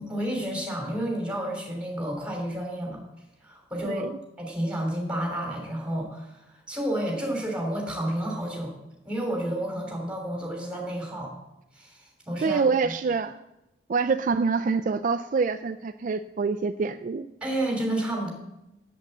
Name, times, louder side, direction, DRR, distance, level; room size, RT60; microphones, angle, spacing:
voice 1, 0.0-3.0 3.4-4.0 4.4-8.7 9.0-11.3 11.7-12.9 17.4-18.3, right 1 dB, 5° right, 0 dB, 3.1 m, -30 dB
voice 2, 12.4-13.4 13.9-17.3, right 4 dB, 45° right, 10 dB, 0.3 m, -26 dB
8.3 x 8.0 x 7.9 m, 0.91 s
head